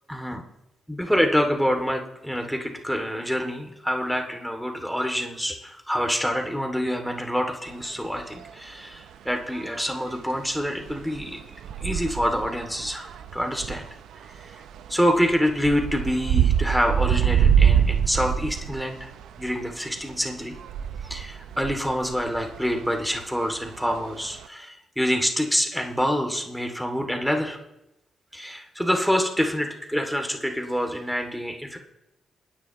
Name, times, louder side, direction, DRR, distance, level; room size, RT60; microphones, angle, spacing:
voice 1, 0.1-0.4 0.9-11.4 11.8-13.9 14.4-14.6 14.9-19.1 19.4-20.6 21.1-27.6 28.3-31.8, equal, ahead, 3 dB, 2.4 m, -26 dB
sound 1, 7.7-7.8 8.2-8.5 9.5-10.0 10.5-19.7 20.0-24.4, right 8 dB, 80° right, 0.5 m, -25 dB
27.5 x 10.0 x 3.0 m, 0.90 s
supercardioid pair, 55°, 0 cm